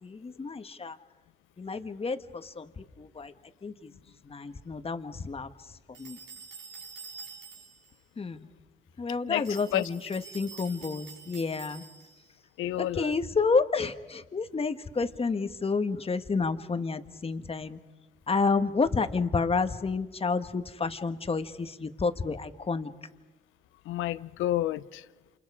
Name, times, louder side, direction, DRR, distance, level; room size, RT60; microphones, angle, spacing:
voice 1, 0.0-1.0 1.6-3.3 3.6-6.2 8.2-8.5 9.0-11.8 12.8-17.8 18.3-22.9, left 4 dB, 30° left, 1.4 m, -30 dB
sound 1, 5.9-7.9 9.4-12.3, right 5 dB, 75° right, 5.2 m, -47 dB
voice 2, 12.6-13.1 23.9-25.0, left 14 dB, 90° left, 0.7 m, -29 dB
28.5 x 28.0 x 4.9 m
cardioid pair, 90°, 20 cm